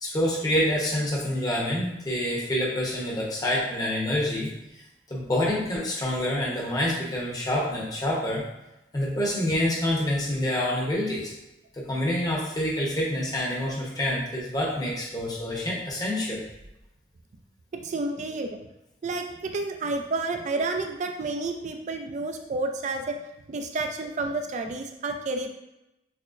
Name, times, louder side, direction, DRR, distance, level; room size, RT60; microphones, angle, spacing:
voice 1, 0.0-4.5 5.1-8.4 8.9-11.3 11.7-16.4, left 1 dB, 20° left, -4 dB, 0.7 m, -27 dB
voice 2, 17.7-18.6 19.0-23.2 23.5-25.5, right 3 dB, 45° right, 5 dB, 0.4 m, -30 dB
6.0 x 2.0 x 2.4 m, 0.91 s
head